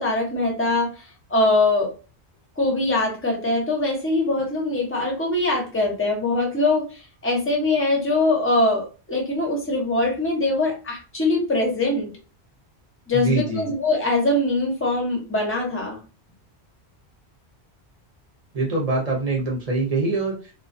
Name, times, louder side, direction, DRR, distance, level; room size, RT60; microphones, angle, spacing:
voice 1, 0.0-1.9 2.6-12.1 13.1-16.0, left 2 dB, 15° left, 0 dB, 0.5 m, -22 dB
voice 2, 13.1-13.7 18.5-20.5, right 2 dB, 40° right, -2 dB, 0.7 m, -24 dB
2.3 x 2.2 x 2.5 m, 0.34 s
omnidirectional pair, 1.1 m